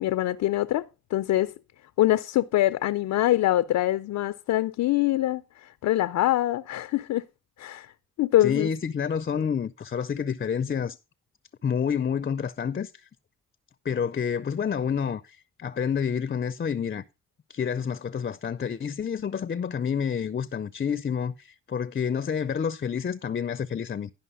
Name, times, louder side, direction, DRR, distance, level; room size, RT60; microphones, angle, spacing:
voice 1, 0.0-1.5 2.0-7.2 7.6-7.9 8.2-8.7, left 14 dB, 80° left, 0.5 m, -24 dB
voice 2, 8.4-11.0 11.6-13.1 13.8-17.0 17.5-24.1, left 7 dB, 35° left, 0.5 m, -29 dB
11.0 x 5.5 x 5.4 m
cardioid pair, 70°, 29 cm